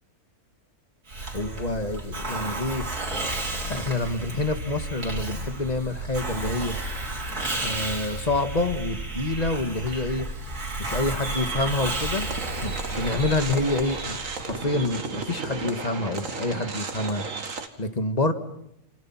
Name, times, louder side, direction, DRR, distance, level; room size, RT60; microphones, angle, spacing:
Hiss, 1.1-14.6, right 2 dB, 90° right, 4.5 m, -32 dB
voice 1, 1.3-2.9 3.7-6.8 7.6-10.3 10.8-12.3 12.6-14.2 14.5-17.2 17.8-18.3, left 2 dB, 25° left, 9 dB, 1.8 m, -27 dB
sound 1, 11.2-17.7, right 4 dB, 60° right, 2.3 m, -34 dB
28.0 x 27.5 x 5.9 m, 0.78 s
omnidirectional pair, 1.6 m